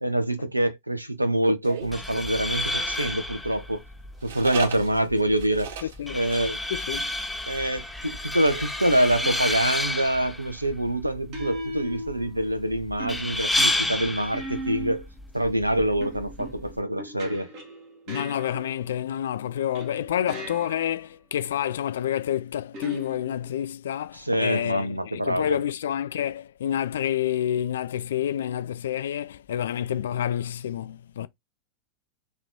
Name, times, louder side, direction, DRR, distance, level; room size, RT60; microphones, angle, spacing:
voice 1, 0.0-3.8 4.2-5.7 6.1-6.6 7.5-15.1 15.3-17.5 24.1-25.6, right 1 dB, 85° right, 0.6 m, -25 dB
sound 1, 1.6-3.0 4.2-6.0 6.3-6.5 6.7-6.8 7.1-7.4, right 6 dB, 55° right, 2.4 m, -37 dB
sound 2, 1.8-16.8, left 1 dB, 5° left, 0.7 m, -31 dB
voice 2, 5.8-6.2 6.7-7.1 18.1-31.3, left 10 dB, 60° left, 0.4 m, -28 dB
sound 3, 9.2-9.6 11.3-12.6 13.0-15.2 16.0-19.0 19.8-21.0 22.7-23.6, right 1 dB, 40° right, 1.5 m, -38 dB
4.1 x 2.9 x 3.5 m
figure-of-eight pair, 90°, 0 cm